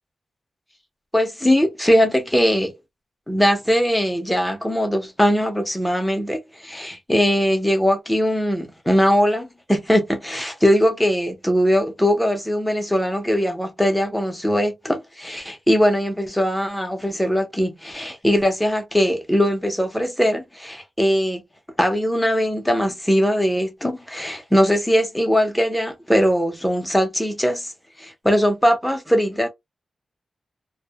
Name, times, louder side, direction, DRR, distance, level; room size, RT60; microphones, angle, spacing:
voice 1, 1.1-2.7 3.3-21.4 21.8-27.7 28.0-29.5, equal, 5° left, 0.6 m, -20 dB
2.1 x 2.1 x 2.7 m
wide cardioid pair, 100°, 0 cm